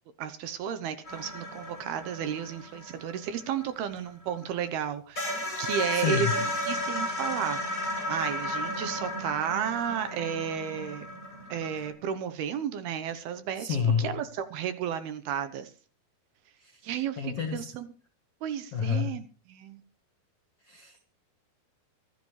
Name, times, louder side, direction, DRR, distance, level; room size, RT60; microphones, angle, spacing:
voice 1, 0.2-7.6 8.1-11.1 11.5-15.7 16.8-17.9 18.4-19.8, right 8 dB, 75° right, 11 dB, 2.6 m, -33 dB
sound 1, 1.1-4.4 4.8-4.9 5.2-11.9, left 1 dB, 15° left, 7.6 m, -34 dB
voice 2, 5.9-6.3 13.6-14.1 16.6-16.7 17.2-17.7 18.7-19.1 20.7-21.1, left 7 dB, 60° left, 3 dB, 1.5 m, -29 dB
25.0 x 11.0 x 3.3 m, 0.37 s
omnidirectional pair, 5.1 m